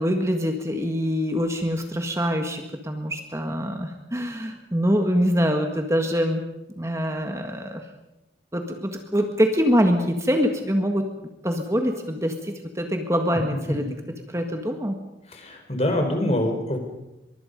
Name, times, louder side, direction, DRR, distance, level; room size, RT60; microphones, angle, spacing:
voice 1, 0.0-6.4 6.8-7.8 8.5-11.1 11.4-13.8 14.3-15.0, equal, 15° right, 4 dB, 1.7 m, -24 dB
voice 2, 15.3-16.8, left 1 dB, 35° left, 5 dB, 4.4 m, -25 dB
24.0 x 23.0 x 5.3 m, 0.95 s
head